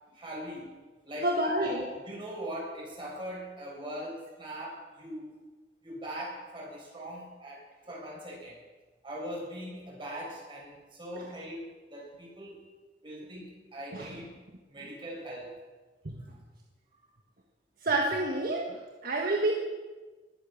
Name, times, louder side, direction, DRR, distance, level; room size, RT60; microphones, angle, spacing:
voice 1, 0.1-0.7 1.0-5.3 5.8-8.6 9.0-12.6 13.0-14.3 14.7-15.5, equal, 30° right, -4 dB, 6.6 m, -41 dB
voice 2, 1.2-1.9 11.1-11.2 13.9-14.2 16.0-16.2 17.8-19.5, right 1 dB, 55° right, 0 dB, 1.5 m, -29 dB
20.0 x 8.8 x 7.3 m, 1.3 s
head